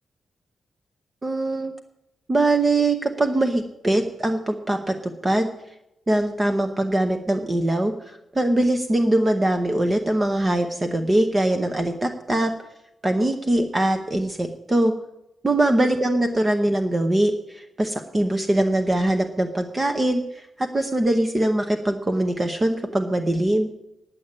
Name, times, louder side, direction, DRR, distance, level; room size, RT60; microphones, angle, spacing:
voice 1, 1.2-1.7 2.3-5.5 6.1-12.5 13.0-14.9 15.4-23.7, right 1 dB, 20° right, 6 dB, 0.8 m, -22 dB
10.0 x 8.5 x 8.2 m, 0.87 s
wide cardioid pair, 160°, 0 cm